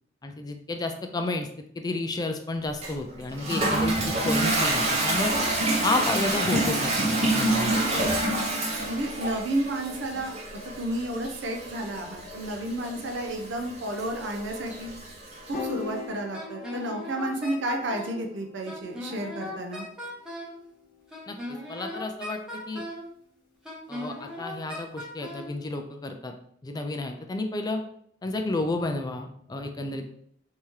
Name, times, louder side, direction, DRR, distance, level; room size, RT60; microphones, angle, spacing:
voice 1, 0.2-1.5 1.8-5.3 5.8-7.8 21.3-22.8 23.9-26.3 26.6-27.8 28.2-30.0, left 2 dB, 20° left, 5 dB, 0.3 m, -31 dB
Toilet flush, 2.8-15.6, right 2 dB, 35° right, 0.9 m, -28 dB
voice 2, 8.8-10.3 10.8-14.9 15.5-19.8, right 1 dB, 65° right, 3 dB, 0.6 m, -31 dB
Piano, 15.5-21.9, left 5 dB, 50° left, 0.8 m, -42 dB
Wind instrument woodwind instrument, 16.3-18.2 18.7-20.6 21.1-23.1 23.6-25.5, left 1 dB, 5° right, 0.9 m, -38 dB
3.5 x 2.8 x 3.1 m, 0.67 s
head